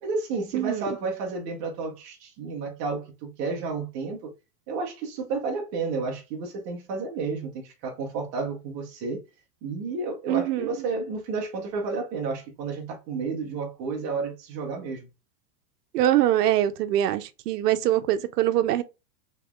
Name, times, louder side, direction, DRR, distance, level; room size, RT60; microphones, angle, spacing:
voice 1, 0.0-4.3 4.7-9.2 9.6-15.1, right 4 dB, 20° right, 0.3 m, -31 dB
voice 2, 0.5-1.0 10.3-10.8 15.9-18.8, right 12 dB, 80° right, 0.6 m, -23 dB
2.9 x 2.3 x 3.5 m
supercardioid pair, 140°, 47 cm